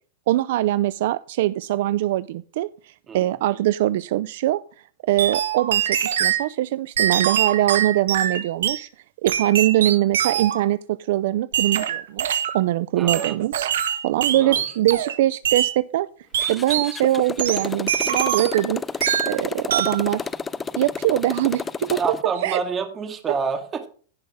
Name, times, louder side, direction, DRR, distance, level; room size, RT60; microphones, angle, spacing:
voice 1, 0.3-4.6 5.1-8.9 9.2-13.7 14.0-16.1 16.5-18.8 19.3-20.3 20.8-22.6, right 14 dB, 65° right, 16 dB, 0.4 m, -22 dB
sound 1, 5.2-6.4 7.0-8.8 9.3-10.7 11.5-12.6 13.1-15.2 15.4-15.7 16.3-16.9 17.4-18.7 19.0-19.4 19.7-20.0, right 10 dB, 90° right, 1.5 m, -24 dB
voice 2, 13.0-13.4 14.4-14.6 21.9-23.9, right 5 dB, 20° right, 7 dB, 2.0 m, -28 dB
Motorcycle, 16.3-22.2, left 5 dB, 15° left, 0.5 m, -31 dB
16.5 x 5.5 x 3.6 m, 0.41 s
supercardioid pair, 140°, 0 cm